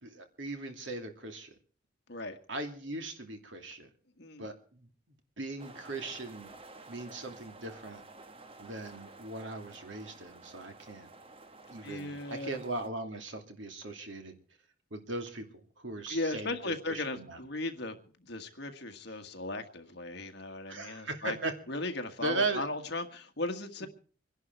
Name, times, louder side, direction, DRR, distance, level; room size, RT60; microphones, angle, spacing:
voice 1, 0.0-1.5 2.5-3.9 4.4-6.5 6.9-8.0 8.6-11.1 11.7-14.4 14.9-17.4 20.7-21.6 22.2-22.7 23.8-23.9, right 2 dB, 70° right, 5 dB, 2.6 m, -38 dB
sound 1, 5.6-12.9, right 3 dB, 30° right, 1.1 m, -52 dB
voice 2, 11.8-12.6 16.1-21.4 21.7-23.9, left 2 dB, 60° left, 6 dB, 1.8 m, -37 dB
25.0 x 11.0 x 4.6 m, 0.41 s
head